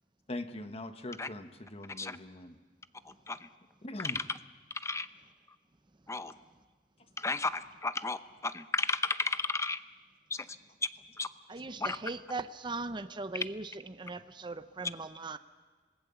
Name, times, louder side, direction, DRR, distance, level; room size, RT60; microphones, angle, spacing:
voice 1, 0.3-2.5 3.8-4.2, left 1 dB, 35° left, 8 dB, 1.3 m, -41 dB
voice 2, 4.0-4.4 4.8-5.1 6.1-6.3 7.2-9.8 10.3-10.4 11.2-11.3 11.8-12.0, left 3 dB, 15° left, 12 dB, 0.7 m, -33 dB
voice 3, 11.5-15.4, right 3 dB, 25° right, 11 dB, 0.7 m, -39 dB
26.5 x 19.5 x 7.0 m, 1.4 s
head